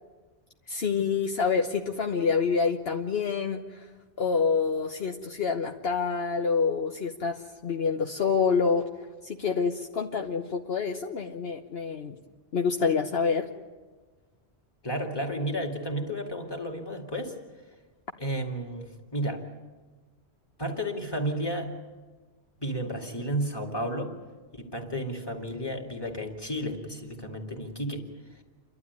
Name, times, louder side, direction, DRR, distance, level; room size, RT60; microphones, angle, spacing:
voice 1, 0.7-3.8 4.2-8.9 9.2-12.1 12.5-13.5, left 5 dB, 65° left, 2 dB, 1.2 m, -27 dB
voice 2, 14.8-17.3 18.2-19.4 20.6-21.7 22.6-24.2 24.5-28.1, right 1 dB, 20° left, 2 dB, 2.5 m, -32 dB
29.5 x 12.5 x 9.6 m, 1.3 s
omnidirectional pair, 1.1 m